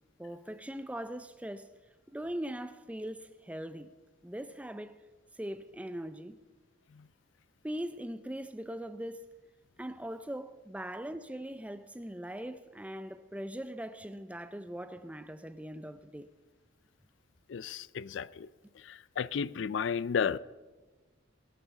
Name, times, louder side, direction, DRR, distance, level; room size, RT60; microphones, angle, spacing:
voice 1, 0.2-1.7 2.1-3.9 4.2-5.0 5.3-6.4 7.6-9.3 9.8-16.3, right 1 dB, 5° right, 0.4 m, -40 dB
voice 2, 17.5-18.5 18.8-20.4, left 6 dB, 65° left, 0.4 m, -33 dB
20.5 x 9.1 x 7.1 m
head